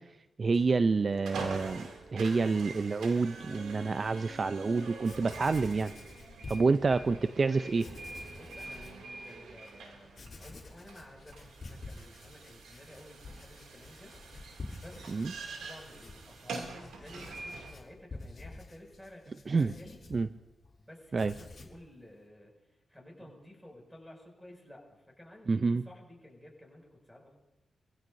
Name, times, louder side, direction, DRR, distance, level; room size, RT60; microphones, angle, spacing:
voice 1, 0.4-5.9 6.5-7.8 15.1-15.3 19.5-19.7 20.1-20.3 21.1-21.3 25.5-25.8, right 4 dB, 45° right, 11 dB, 0.5 m, -28 dB
sound 1, 0.5-17.7, right 3 dB, 90° right, 2.6 m, -45 dB
Writing, 4.7-4.8 5.0-7.2 7.7-9.0 9.5-9.6 10.1-20.7 21.0-21.8, left 3 dB, 50° left, 3.4 m, -49 dB
voice 2, 8.3-14.2 14.8-15.1 15.6-20.0 20.8-22.5 22.9-27.4, left 1 dB, ahead, -1 dB, 6.2 m, -53 dB
26.0 x 15.5 x 2.7 m, 1.0 s
cardioid pair, 65°, 0 cm